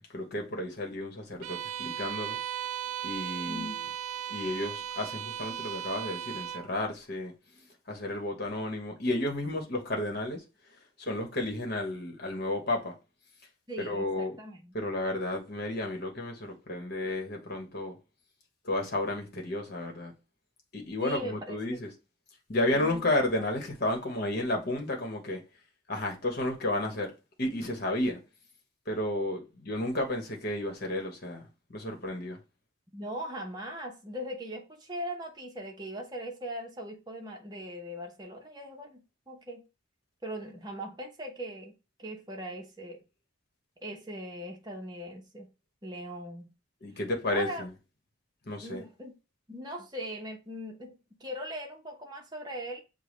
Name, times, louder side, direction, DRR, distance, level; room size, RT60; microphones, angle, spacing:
voice 1, 0.0-2.4 3.0-3.7 4.3-7.3 7.9-10.4 11.0-12.9 13.8-14.4 14.7-18.0 18.6-20.1 20.7-21.9 22.5-25.4 25.9-27.1 27.4-28.2 28.9-31.4 31.7-32.4 46.8-47.7 48.5-48.8, left 1 dB, 50° left, 1.2 m, -32 dB
Bowed string instrument, 1.4-6.7, right 10 dB, 80° right, 0.3 m, -36 dB
voice 2, 3.5-3.8 13.7-14.7 21.0-21.8 22.7-23.1 32.9-39.6 40.2-41.7 42.0-43.0 43.8-45.5 45.8-46.5 47.3-47.6 48.6-49.1 49.5-52.8, equal, 20° right, 0.9 m, -40 dB
6.9 x 2.3 x 3.2 m
head